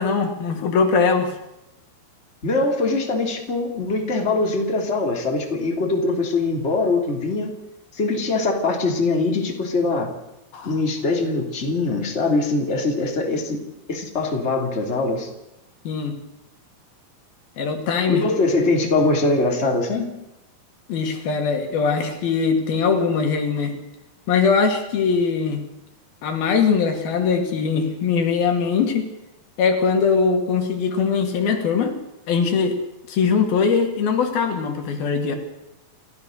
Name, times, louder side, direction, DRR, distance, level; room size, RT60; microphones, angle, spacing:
voice 1, 0.0-1.3 10.5-10.8 15.9-16.2 17.6-18.2 20.9-23.7 24.3-25.6 26.2-29.1 29.6-31.9 32.3-32.8 33.1-35.4, left 5 dB, 80° left, 4 dB, 4.3 m, -21 dB
voice 2, 2.4-7.5 7.9-10.1 10.6-13.6 13.9-15.3 18.1-20.1, left 3 dB, 20° left, 2 dB, 3.0 m, -22 dB
29.0 x 15.0 x 6.6 m, 0.92 s
omnidirectional pair, 4.3 m